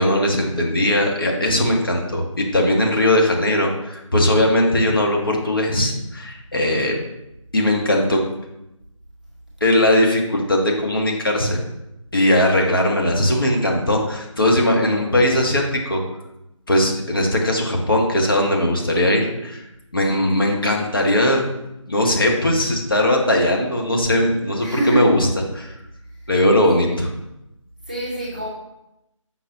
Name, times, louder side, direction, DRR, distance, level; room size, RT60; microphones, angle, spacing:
voice 1, 0.0-6.9 7.5-8.2 9.6-11.6 12.1-16.0 16.7-19.7 19.9-21.4 21.9-25.3 25.5-25.7 26.3-27.1, left 1 dB, 40° left, 0 dB, 1.4 m, -19 dB
voice 2, 24.6-25.1 26.8-26.9 27.8-28.5, right 2 dB, 15° right, -6 dB, 0.8 m, -25 dB
7.9 x 5.8 x 3.0 m, 0.90 s
figure-of-eight pair, 165°, 17 cm